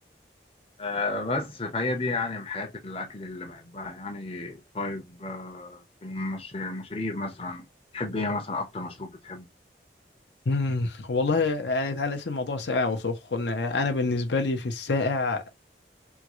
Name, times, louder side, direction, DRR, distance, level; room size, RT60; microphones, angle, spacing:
voice 1, 0.8-7.6 7.9-9.5, left 2 dB, 30° left, 0.7 m, -32 dB
voice 2, 10.5-15.4, left 3 dB, 80° left, 0.8 m, -26 dB
3.6 x 2.3 x 3.0 m
head